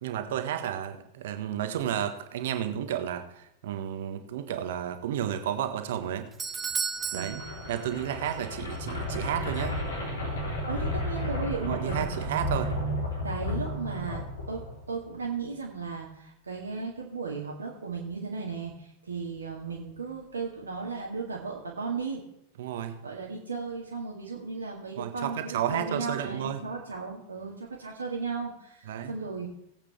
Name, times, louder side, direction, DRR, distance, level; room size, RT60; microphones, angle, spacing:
voice 1, 0.0-6.3 7.1-7.4 7.7-9.8 11.6-12.7 22.6-23.0 25.0-26.6 28.9-29.2, right 10 dB, 55° right, 8 dB, 1.4 m, -32 dB
Doorbell, 6.1-8.4 8.7-8.8 9.5-9.6, right 6 dB, 20° right, 0.8 m, -35 dB
sound 1, 7.0-15.0, left 1 dB, 70° left, 3.7 m, -33 dB
voice 2, 7.1-7.5 10.7-12.1 13.2-14.6 14.9-22.2 23.0-29.5, right 4 dB, 75° right, -2 dB, 1.9 m, -35 dB
19.0 x 8.2 x 3.4 m, 0.79 s
figure-of-eight pair, 90°, 0 cm